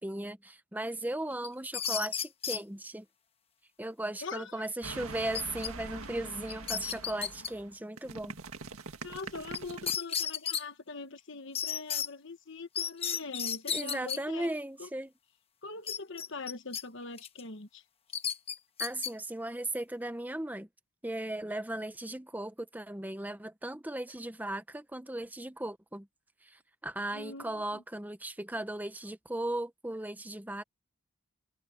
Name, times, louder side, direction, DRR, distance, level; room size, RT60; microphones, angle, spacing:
voice 1, 0.0-3.1 3.8-8.4 13.7-15.1 18.8-20.7 21.0-26.1 26.4-30.6, right 1 dB, 10° right, 0.7 m, -37 dB
sound 1, 1.4-2.6 5.3-5.7 6.0-6.1 6.5-7.5 9.5-9.6 9.9-10.6 11.6-12.1 12.8-14.2 15.9-16.8 17.2-17.4 18.1-19.1, left 7 dB, 25° left, 1.1 m, -33 dB
voice 2, 4.2-4.7 9.0-14.5 14.8-14.9 15.6-17.8 27.1-27.8, left 3 dB, 55° left, 1.2 m, -42 dB
sound 2, 4.8-10.0, right 4 dB, 75° right, 1.9 m, -44 dB
head